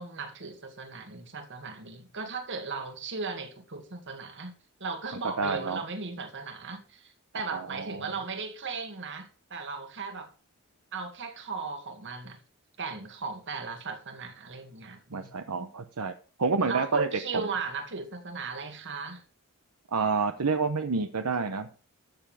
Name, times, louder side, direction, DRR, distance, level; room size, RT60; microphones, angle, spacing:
voice 1, 0.0-4.5 4.8-10.3 10.9-12.4 12.8-15.7 16.7-19.2, right 4 dB, 55° right, 2.1 m, -37 dB
voice 2, 5.4-5.8 7.5-8.1 15.1-16.1 16.4-17.1 19.9-21.7, right 4 dB, 75° right, 0.9 m, -28 dB
13.5 x 7.0 x 4.9 m
head